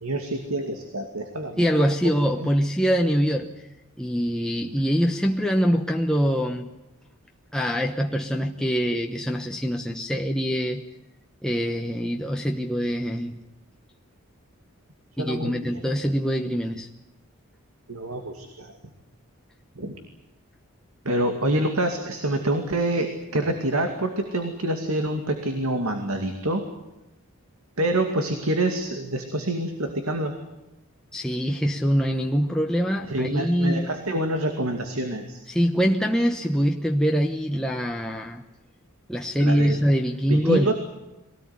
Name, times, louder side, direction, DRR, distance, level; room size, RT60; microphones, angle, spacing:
voice 1, 0.0-2.5 15.2-15.9 17.9-18.7 19.8-19.9 21.0-26.6 27.8-30.3 33.0-35.4 39.4-39.8 40.3-40.7, right 1 dB, 80° right, 5 dB, 2.4 m, -27 dB
voice 2, 1.6-3.5 4.0-6.7 7.5-10.8 11.4-13.4 15.2-16.9 31.1-33.9 35.5-38.4 39.1-40.7, equal, 5° left, 1 dB, 1.0 m, -24 dB
23.5 x 18.0 x 9.7 m, 0.97 s
head